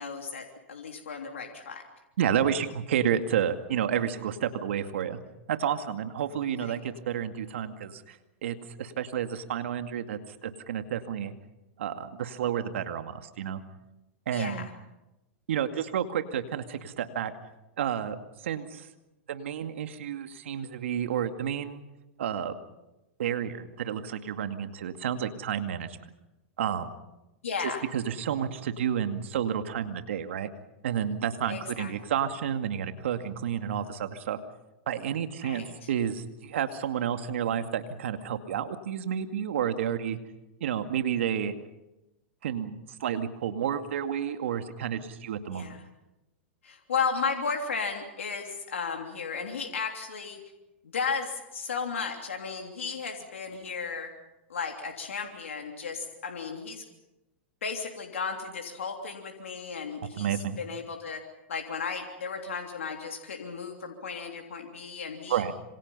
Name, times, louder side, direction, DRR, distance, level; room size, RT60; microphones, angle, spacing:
voice 1, 0.0-1.8 6.5-6.8 14.3-14.7 27.4-27.8 31.5-31.9 35.4-35.9 45.5-45.8 46.6-50.4 50.9-54.1 54.5-56.8 57.6-61.2 61.5-65.4, left 5 dB, 85° left, 3 dB, 3.2 m, -34 dB
voice 2, 2.2-5.2 5.5-8.2 8.4-11.3 11.8-13.6 14.3-14.7 15.5-17.3 17.8-18.2 18.4-18.9 19.3-21.8 22.2-22.6 23.2-26.0 26.6-26.9 27.6-30.5 30.8-34.4 34.9-40.2 40.6-41.5 42.4-45.7 60.2-60.6 65.3-65.5, right 9 dB, 75° right, 8 dB, 2.2 m, -30 dB
26.5 x 26.5 x 5.6 m, 0.96 s
hypercardioid pair, 110°, 7 cm